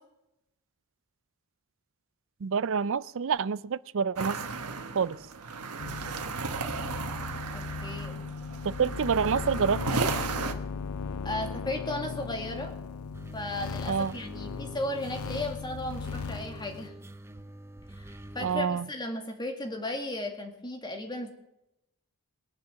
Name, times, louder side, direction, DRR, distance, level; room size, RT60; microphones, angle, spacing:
voice 1, 2.4-4.4 4.9-5.2 8.6-10.1 13.9-14.2 18.4-18.9, right 6 dB, 60° right, 0.4 m, -27 dB
sound 1, 4.2-10.5, right 4 dB, 85° right, 1.4 m, -35 dB
sound 2, 5.8-16.9, left 5 dB, 70° left, 0.6 m, -37 dB
voice 2, 7.5-8.2 11.2-12.7 13.3-16.9 17.9-21.3, left 1 dB, 20° left, 2.2 m, -35 dB
sound 3, 13.1-18.6, right 1 dB, 10° right, 0.7 m, -46 dB
22.0 x 7.6 x 7.3 m
head